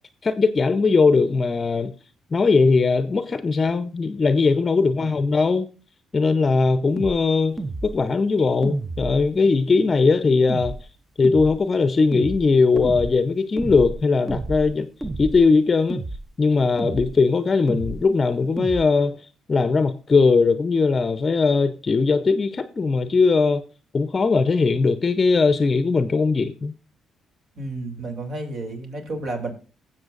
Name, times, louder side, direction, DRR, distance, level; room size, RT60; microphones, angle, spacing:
voice 1, 0.2-1.9 2.3-5.7 6.1-7.6 7.8-10.8 11.2-14.9 15.2-16.0 16.4-19.2 19.5-23.6 23.9-26.7, left 4 dB, 35° left, 0.6 m, -19 dB
voice 2, 4.8-5.2 9.6-9.8 27.6-29.5, right 2 dB, 60° right, 2.8 m, -32 dB
sound 1, 7.0-7.2 7.6-8.0 8.6-9.3 10.5-10.8 11.2-11.6 12.1-12.5 12.8-13.1 13.6-14.0 14.3-14.7 15.0-15.5 15.9-16.3 16.8-17.2 17.7-18.0 18.6-18.9, right 2 dB, 20° right, 0.7 m, -30 dB
17.5 x 7.5 x 2.5 m
cardioid pair, 90°, 0 cm